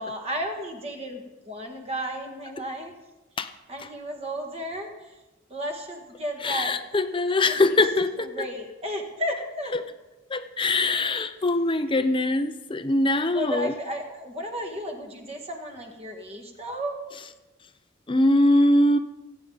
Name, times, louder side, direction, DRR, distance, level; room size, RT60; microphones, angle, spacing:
voice 1, 0.0-3.0 3.7-5.2 5.5-6.8 7.5-7.8 8.2-9.8 13.3-17.0, equal, 30° right, 3 dB, 1.8 m, -33 dB
voice 2, 6.4-8.5 9.7-9.8 10.3-13.7 18.1-19.0, left 2 dB, 25° left, 10 dB, 0.7 m, -22 dB
23.0 x 9.2 x 4.0 m, 1.1 s
head